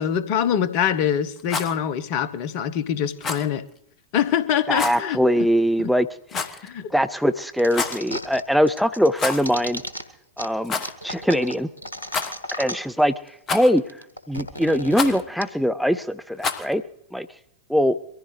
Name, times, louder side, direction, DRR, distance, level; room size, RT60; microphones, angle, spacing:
voice 1, 0.0-3.7 4.1-5.5 5.8-5.9 6.6-6.9, left 9 dB, 45° left, 0.9 m, -24 dB
Rattle, 1.4-1.8 3.2-3.5 4.7-5.0 6.3-6.7 7.6-8.0 9.1-9.6 9.8-9.9 10.6-10.9 12.1-12.6 13.5-13.9 14.9-15.2 16.4-16.7, left 5 dB, 25° left, 1.2 m, -28 dB
voice 2, 4.7-6.1 6.9-9.8 10.4-10.7 11.0-11.7 12.6-13.8 14.3-16.8 17.1-17.3 17.7-18.0, equal, ahead, 0.4 m, -22 dB
sound 1, 7.6-8.4 8.7-10.0 10.4-10.5 10.8-13.0 13.3-13.4 13.5-15.4, equal, 80° left, 1.3 m, -34 dB
23.5 x 15.0 x 3.2 m
figure-of-eight pair, 90°, 0 cm